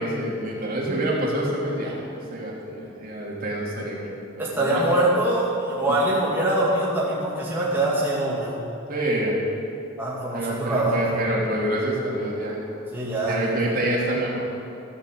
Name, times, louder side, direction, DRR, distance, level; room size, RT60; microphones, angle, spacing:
voice 1, 0.0-2.0 2.3-4.8 8.9-9.4 10.3-12.6 13.2-14.4, right 1 dB, 45° right, -4 dB, 3.1 m, -27 dB
voice 2, 4.4-8.5 10.0-11.1 12.9-13.4, right 1 dB, 10° right, -7 dB, 2.3 m, -23 dB
14.5 x 10.0 x 7.7 m, 2.6 s
head